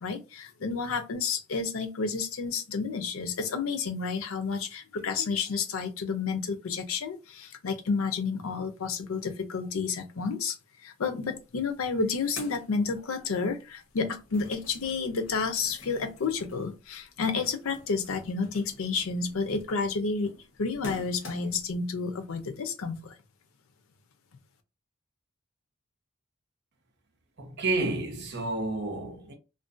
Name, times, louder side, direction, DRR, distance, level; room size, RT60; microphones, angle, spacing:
voice 1, 0.0-10.6 10.8-20.3 20.6-23.1, left 4 dB, 85° left, 0.5 m, -30 dB
sound 1, 11.3-11.4 11.7-13.5 13.8-21.7, left 1 dB, 70° left, 0.9 m, -48 dB
voice 2, 27.4-29.3, right 2 dB, 55° right, 0.7 m, -30 dB
2.5 x 2.1 x 2.5 m
head